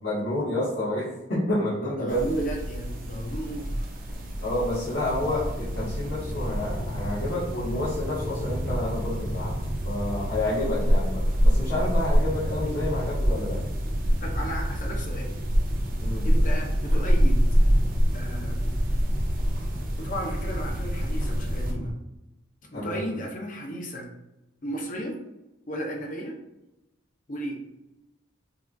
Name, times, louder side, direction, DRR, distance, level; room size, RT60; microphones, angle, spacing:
voice 1, 0.0-2.3 4.4-9.5 9.8-13.6 16.0-16.3 22.7-23.0, left 1 dB, 65° left, -10 dB, 1.4 m, -29 dB
voice 2, 1.8-3.8 10.5-10.7 14.2-15.3 16.2-17.4 18.1-18.6 20.0-21.9 22.7-24.1 24.6-25.2 25.7-26.3 27.3-27.6, right 1 dB, 40° left, 1 dB, 0.7 m, -34 dB
sound 1, 2.1-21.7, equal, 45° right, 0.7 m, -27 dB
sound 2, 5.0-21.9, equal, 70° right, 1.4 m, -34 dB
5.4 x 2.4 x 2.7 m, 0.93 s
head